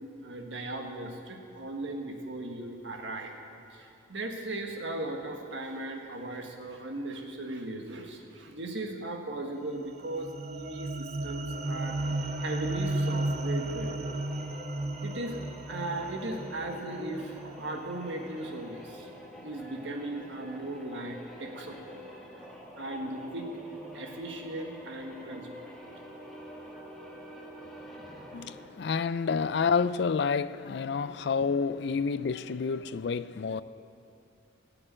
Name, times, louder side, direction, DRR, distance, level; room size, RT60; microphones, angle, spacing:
voice 1, 0.2-3.3 3.7-12.0 12.4-14.1 15.0-15.4 15.7-19.1 19.4-22.0 22.8-23.5 23.9-25.7, right 2 dB, 75° right, 1.5 m, -37 dB
sound 1, 9.8-18.2, right 1 dB, 35° right, 0.5 m, -34 dB
sound 2, 11.3-28.8, equal, ahead, 1.3 m, -47 dB
voice 2, 28.3-33.6, left 5 dB, 60° left, 0.4 m, -29 dB
16.0 x 6.8 x 8.7 m
head